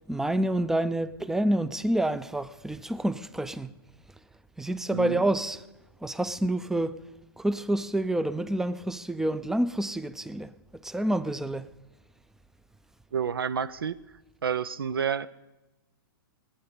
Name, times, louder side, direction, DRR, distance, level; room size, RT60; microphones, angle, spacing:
voice 1, 0.0-3.7 4.6-5.6 6.0-7.0 7.4-10.5 10.8-11.7, right 1 dB, 5° right, 0.4 m, -28 dB
voice 2, 4.9-5.2 13.1-14.0 14.4-15.3, right 7 dB, 85° right, 0.4 m, -29 dB
19.5 x 8.6 x 5.2 m
hypercardioid pair, 115°, 12 cm